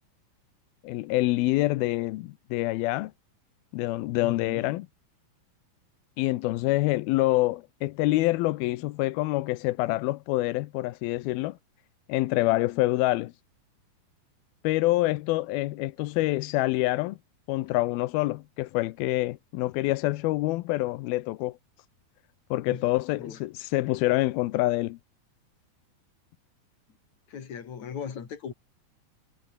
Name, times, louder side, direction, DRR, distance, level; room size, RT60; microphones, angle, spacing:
voice 1, 0.8-3.1 3.7-4.9 6.2-11.6 12.1-13.3 14.6-17.2 17.5-21.6 22.5-25.0, left 18 dB, 90° left, 2.6 m, -26 dB
voice 2, 4.2-4.8 22.7-22.9 23.1-23.4 27.3-28.5, left 7 dB, 50° left, 4.2 m, -38 dB
omnidirectional pair, 4.2 m